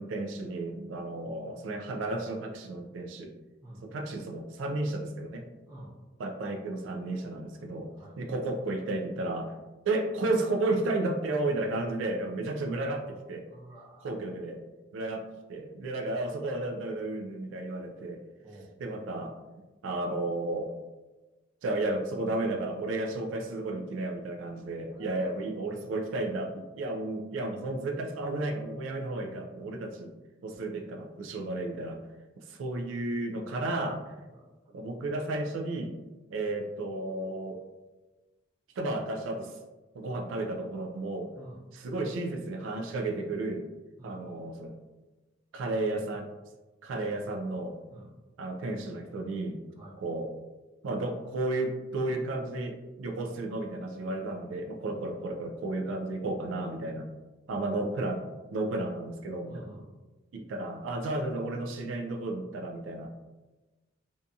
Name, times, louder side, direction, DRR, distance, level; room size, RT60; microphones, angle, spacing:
voice 1, 0.0-3.3 3.8-5.4 6.2-9.5 9.8-13.5 14.0-14.6 14.9-15.2 15.5-18.2 18.8-19.4 19.8-20.7 21.6-30.1 30.4-32.0 32.4-34.1 34.7-35.9 36.3-37.6 38.8-39.6 39.9-41.3 41.7-43.7 44.0-44.7 45.5-46.3 46.8-47.8 48.4-49.6 50.0-50.3 50.8-57.1 57.5-59.7 60.3-63.1, right 2 dB, 85° right, 3 dB, 0.3 m, -33 dB
voice 2, 13.5-14.2 18.4-18.7 24.9-25.3 34.2-34.5 41.4-41.6 44.0-44.2 47.9-48.1 49.8-50.0 54.9-55.1 57.5-57.6 59.5-59.9, right 1 dB, 20° right, -6 dB, 0.7 m, -49 dB
2.6 x 2.6 x 2.3 m, 1.2 s
head